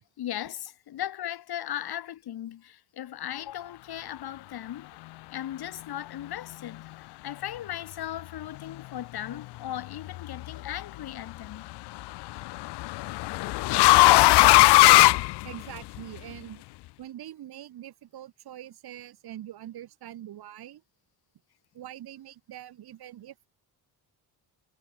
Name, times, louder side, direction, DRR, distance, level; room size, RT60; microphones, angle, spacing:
voice 1, 0.2-4.9 5.3-11.7, left 12 dB, 70° left, 4.6 m, -37 dB
sound 1, 10.1-10.6 12.0-16.0, left 19 dB, 85° left, 0.7 m, -18 dB
voice 2, 15.4-16.6 17.0-20.8 21.7-23.5, right 12 dB, 70° right, 3.5 m, -43 dB
cardioid pair, 110°, 39 cm